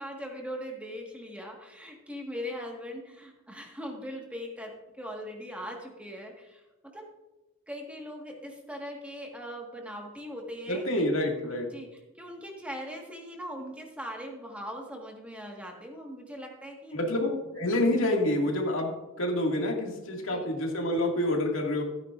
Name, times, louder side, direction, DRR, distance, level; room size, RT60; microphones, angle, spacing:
voice 1, 0.0-6.6 6.9-7.1 7.7-11.0 11.7-16.9 20.3-20.5, equal, 5° right, 0 dB, 1.6 m, -40 dB
voice 2, 10.7-11.7 16.9-17.3 17.5-18.9 19.2-21.8, left 1 dB, 80° left, 0 dB, 2.1 m, -27 dB
15.0 x 9.5 x 2.5 m, 1.0 s
head